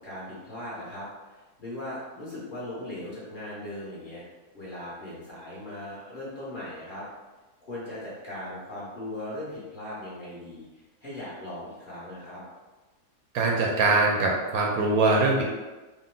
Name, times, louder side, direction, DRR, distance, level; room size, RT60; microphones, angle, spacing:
voice 1, 0.0-4.2 4.5-7.0 7.6-10.6 11.0-12.4, left 1 dB, 35° left, -9 dB, 1.3 m, -38 dB
voice 2, 13.3-15.4, right 3 dB, 75° right, -2 dB, 1.0 m, -22 dB
3.8 x 2.2 x 3.7 m, 1.2 s
omnidirectional pair, 1.7 m